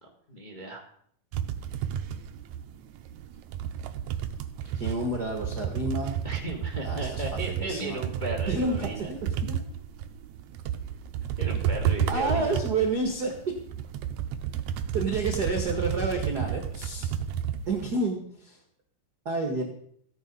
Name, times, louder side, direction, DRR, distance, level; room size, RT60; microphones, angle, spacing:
voice 1, 0.3-0.8 6.2-9.1 11.4-12.6, right 1 dB, 20° left, 2 dB, 1.4 m, -35 dB
sound 1, 1.3-17.9, right 9 dB, 85° right, 1.6 m, -32 dB
voice 2, 4.7-6.1 6.8-8.0 8.5-9.6 12.1-13.3 14.9-17.1 17.7-18.6 19.2-19.6, right 3 dB, 50° right, 3 dB, 1.2 m, -29 dB
15.0 x 9.9 x 5.4 m, 0.65 s
omnidirectional pair, 4.4 m